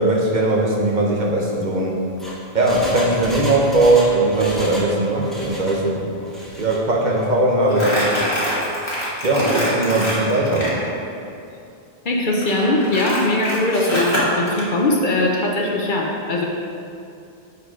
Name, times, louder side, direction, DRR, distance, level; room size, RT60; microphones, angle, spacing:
voice 1, 0.0-2.0 2.5-6.1 6.6-8.3 9.2-10.7, right 2 dB, 50° right, -2 dB, 0.9 m, -19 dB
Engine, 2.2-4.9 5.2-5.8 6.2-6.8 7.2-7.3, equal, ahead, 1.0 m, -33 dB
Crumpling crinkling, 7.7-10.8 12.4-14.6, equal, 25° left, 1.8 m, -24 dB
voice 2, 12.0-16.5, left 2 dB, 55° left, -1 dB, 0.9 m, -20 dB
6.6 x 4.8 x 5.0 m, 2.6 s
omnidirectional pair, 1.1 m